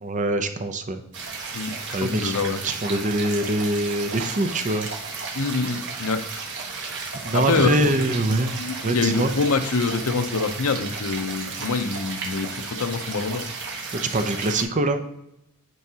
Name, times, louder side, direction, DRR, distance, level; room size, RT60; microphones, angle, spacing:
voice 1, 0.0-1.0 1.9-4.9 7.2-8.6 8.8-9.3 14.1-15.0, right 2 dB, 35° right, 7 dB, 0.6 m, -24 dB
sound 1, 1.1-14.6, right 4 dB, 55° right, 1.3 m, -34 dB
voice 2, 2.0-2.6 5.3-6.2 7.3-7.9 8.6-13.5, left 4 dB, 80° left, 9 dB, 0.7 m, -25 dB
9.3 x 4.8 x 2.8 m, 0.81 s
head